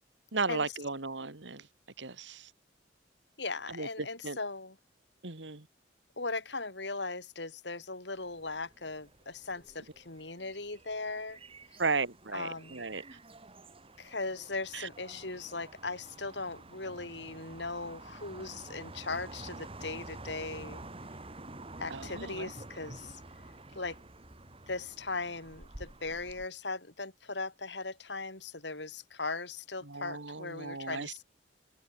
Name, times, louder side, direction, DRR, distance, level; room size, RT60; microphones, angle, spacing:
voice 1, 0.3-1.6 2.0-2.5 3.7-4.4 5.2-5.7 11.8-13.0 14.7-14.9 21.9-22.5 29.8-31.2, right 4 dB, 80° right, 2.4 m, -35 dB
voice 2, 3.4-4.8 6.2-11.4 12.3-12.8 14.0-20.8 21.8-23.2 23.7-24.0 24.7-31.2, left 3 dB, 70° left, 5.1 m, -38 dB
sound 1, 8.1-26.5, right 2 dB, 30° right, 3.5 m, -49 dB
open air
head